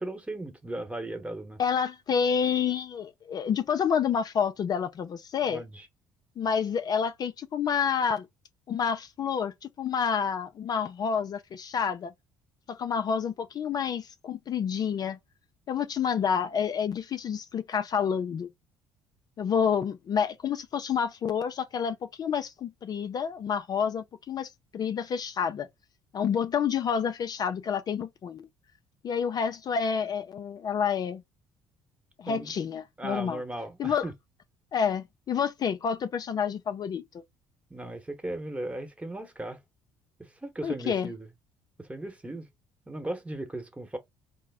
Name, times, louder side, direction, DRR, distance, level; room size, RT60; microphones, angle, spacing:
voice 1, 0.0-1.6 5.5-5.9 32.3-32.5 33.0-34.1 37.7-39.6 40.4-41.3 41.8-42.5 42.9-44.0, right 1 dB, 15° right, 1.1 m, -37 dB
voice 2, 1.6-5.6 6.4-8.3 8.7-12.1 12.7-15.2 15.7-18.5 19.4-25.7 26.1-28.5 29.0-31.2 32.2-33.4 33.8-34.1 34.7-37.0 40.6-41.1, left 7 dB, 45° left, 0.4 m, -29 dB
3.8 x 2.1 x 3.5 m
hypercardioid pair, 65°, 9 cm